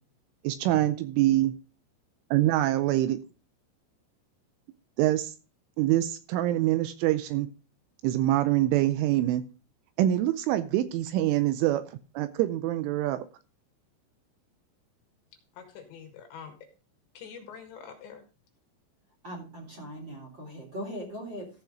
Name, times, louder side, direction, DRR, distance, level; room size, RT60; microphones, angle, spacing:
voice 1, 0.4-1.5 2.3-3.2 5.0-5.3 5.8-7.5 8.0-9.4 10.0-13.2, right 14 dB, 80° right, 12 dB, 3.0 m, -25 dB
voice 2, 15.5-16.5 17.2-18.2, left 7 dB, 65° left, 4 dB, 3.7 m, -45 dB
voice 3, 19.2-21.5, equal, 25° right, 0 dB, 3.0 m, -39 dB
14.5 x 5.8 x 5.1 m, 0.33 s
omnidirectional pair, 5.9 m